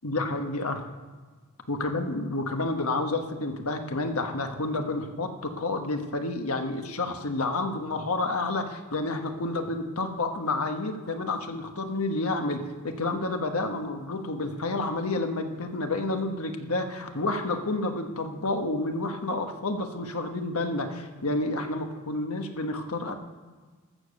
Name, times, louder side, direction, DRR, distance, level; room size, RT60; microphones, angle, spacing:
voice 1, 0.0-0.8 1.7-23.1, left 2 dB, 90° left, 5 dB, 1.3 m, -30 dB
14.0 x 7.0 x 6.5 m, 1.4 s
head